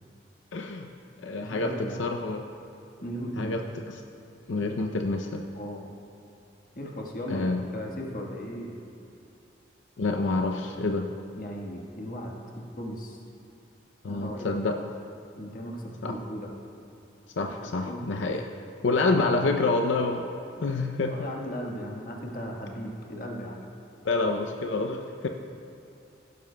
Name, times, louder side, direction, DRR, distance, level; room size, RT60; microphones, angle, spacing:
voice 1, 0.5-0.9 1.2-2.4 3.4-3.6 4.5-5.4 7.3-7.6 10.0-11.1 14.0-14.7 16.0-16.1 17.4-18.4 18.8-20.3 20.6-21.1 24.0-25.3, left 3 dB, 90° left, 4 dB, 0.6 m, -27 dB
voice 2, 1.4-2.0 3.0-3.6 5.5-5.9 6.7-7.5 7.7-8.8 11.4-13.2 14.1-14.5 15.4-16.5 17.4-18.4 18.9-19.3 20.6-20.7 21.1-23.6, equal, 50° left, 0 dB, 1.4 m, -37 dB
16.0 x 12.0 x 2.2 m, 2.7 s
head